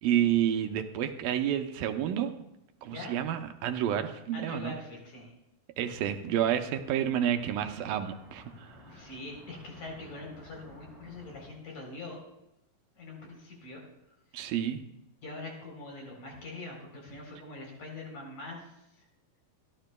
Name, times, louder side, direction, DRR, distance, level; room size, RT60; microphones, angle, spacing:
voice 1, 0.0-2.3 2.8-4.7 5.8-8.7 14.3-14.8, right 10 dB, 80° right, 6 dB, 2.4 m, -29 dB
voice 2, 4.3-5.3 8.9-12.2 12.9-13.8 15.2-19.1, left 2 dB, 55° left, 0 dB, 5.0 m, -43 dB
sound 1, 5.9-11.5, left 1 dB, 10° left, 2.1 m, -54 dB
25.0 x 12.5 x 2.2 m, 0.87 s
omnidirectional pair, 4.1 m